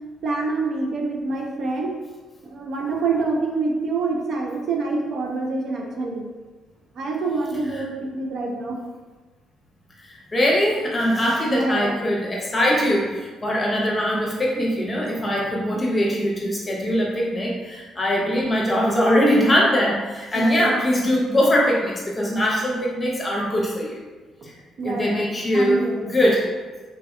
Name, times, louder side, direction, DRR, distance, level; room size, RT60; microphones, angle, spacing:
voice 1, 0.2-2.0 2.4-6.3 7.0-8.8 11.5-11.9 14.9-15.5 20.3-20.8 24.8-25.2 25.5-26.0, right 3 dB, 65° right, 0 dB, 0.5 m, -26 dB
voice 2, 10.0-24.0 24.4-24.5 24.8-26.5, equal, 25° left, -3 dB, 0.8 m, -22 dB
3.2 x 2.7 x 2.3 m, 1.3 s
cardioid pair, 90°, 0 cm